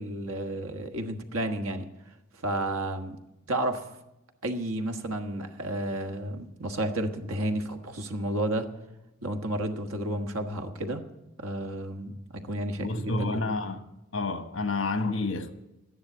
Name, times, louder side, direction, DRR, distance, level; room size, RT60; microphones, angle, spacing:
voice 1, 0.0-1.9 2.4-3.2 3.5-3.8 4.4-8.7 9.2-11.0 11.4-13.4, right 1 dB, 85° right, 1.4 m, -31 dB
voice 2, 12.8-13.9 14.1-15.5, left 3 dB, 65° left, 1.2 m, -29 dB
13.0 x 10.5 x 7.9 m
head